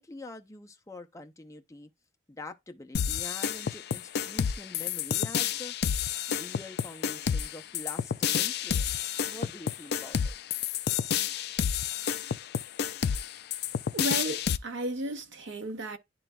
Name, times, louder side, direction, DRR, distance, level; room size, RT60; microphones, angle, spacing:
voice 1, 0.0-1.9 2.3-5.7 6.3-10.3, left 2 dB, 15° left, 0.6 m, -45 dB
sound 1, 2.9-14.6, left 8 dB, 60° left, 0.4 m, -30 dB
voice 2, 13.9-16.0, right 1 dB, 90° right, 0.8 m, -34 dB
11.0 x 3.8 x 2.2 m
head